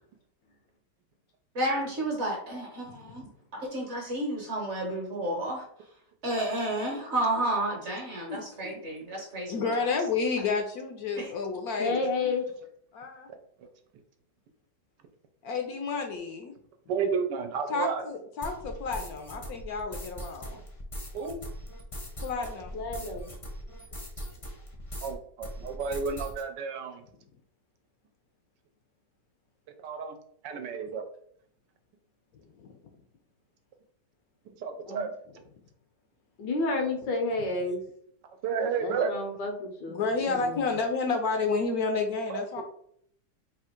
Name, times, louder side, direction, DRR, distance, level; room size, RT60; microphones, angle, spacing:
voice 1, 1.6-3.2 3.5-5.6 6.2-9.7 11.2-11.3, right 1 dB, 45° right, 0 dB, 1.1 m, -31 dB
voice 2, 9.5-12.3 12.9-13.3 15.4-16.5 17.7-20.6 22.2-22.8 32.6-32.7 39.9-42.6, left 4 dB, 65° left, 3 dB, 1.0 m, -30 dB
voice 3, 11.8-12.5 22.7-23.3 34.8-35.0 36.4-37.8 38.8-40.6, left 3 dB, 85° left, 2 dB, 1.6 m, -30 dB
voice 4, 16.9-18.0 21.1-21.4 25.0-27.0 29.8-30.2 30.4-31.1 34.5-35.4 38.4-39.1 42.3-42.6, right 6 dB, 80° right, 6 dB, 1.3 m, -32 dB
sound 1, 18.4-25.1 25.4-26.4, equal, 30° left, 0.6 m, -40 dB
3.6 x 2.4 x 4.3 m, 0.65 s
omnidirectional pair, 1.9 m